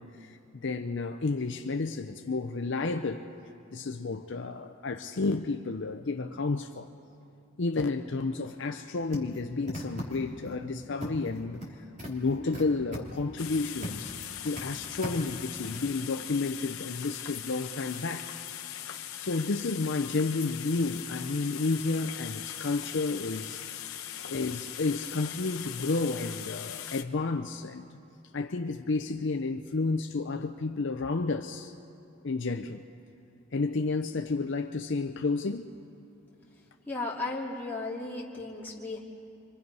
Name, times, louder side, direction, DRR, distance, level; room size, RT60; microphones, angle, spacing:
voice 1, 0.0-3.3 3.7-6.9 7.6-18.3 19.2-23.6 24.3-27.9 28.3-31.7 32.2-32.8 33.5-35.7, left 3 dB, 55° left, 5 dB, 0.6 m, -31 dB
sound 1, 9.1-10.5 11.0-11.7 12.0-14.1 14.3-14.6 15.0-15.9, equal, 35° right, 3.2 m, -39 dB
sound 2, 13.4-27.0, left 11 dB, 70° left, 1.0 m, -40 dB
voice 2, 36.9-39.0, left 2 dB, 10° left, -5 dB, 2.7 m, -35 dB
29.5 x 24.5 x 5.4 m, 2.7 s
head